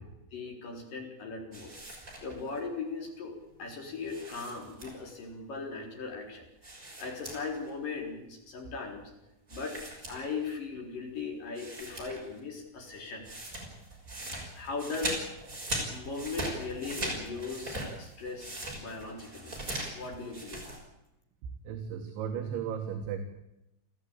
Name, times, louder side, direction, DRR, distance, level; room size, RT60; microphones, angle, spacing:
voice 1, 0.3-1.7 2.2-9.1 9.5-9.8 10.1-13.2 14.5-15.3 15.9-19.5 19.9-20.7, left 4 dB, 45° left, 2 dB, 5.1 m, -38 dB
sound 1, 1.5-2.6 4.0-5.2 6.6-7.7 8.0-8.1 9.5-10.7 11.2-11.3 11.6-12.4 12.7-20.8, right 1 dB, 15° right, 6.3 m, -40 dB
voice 2, 21.4-23.2, right 8 dB, 70° right, 3 dB, 4.0 m, -36 dB
30.0 x 13.5 x 8.8 m, 0.87 s
omnidirectional pair, 5.9 m